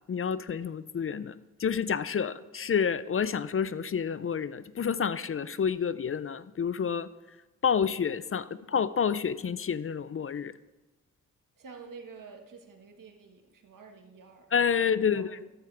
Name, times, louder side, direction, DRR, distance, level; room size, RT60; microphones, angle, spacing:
voice 1, 0.1-1.3 1.6-7.1 7.6-10.5 14.5-15.4, left 7 dB, 40° left, 16 dB, 0.5 m, -29 dB
voice 2, 11.6-14.5 14.8-15.5, right 5 dB, 75° right, 4 dB, 1.6 m, -49 dB
13.0 x 12.0 x 3.4 m, 1.1 s
cardioid pair, 55°, 33 cm